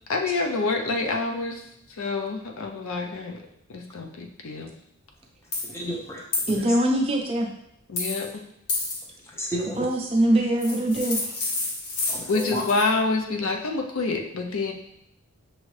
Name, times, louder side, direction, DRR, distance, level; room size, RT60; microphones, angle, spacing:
voice 1, 0.1-1.6 2.0-3.4 3.7-4.7 7.9-8.4 12.3-14.7, left 3 dB, 70° left, 2 dB, 0.6 m, -27 dB
sound 1, 5.5-5.7 6.3-6.5 8.0-8.3 8.7-9.0 10.6-12.9, left 3 dB, 85° left, 1.1 m, -29 dB
voice 2, 5.7-6.7 9.3-9.9 12.1-12.6, equal, 10° left, -2 dB, 0.7 m, -32 dB
voice 3, 6.5-7.5 9.8-11.3, right 1 dB, 25° right, 0 dB, 0.5 m, -23 dB
6.2 x 2.6 x 3.2 m, 0.78 s
head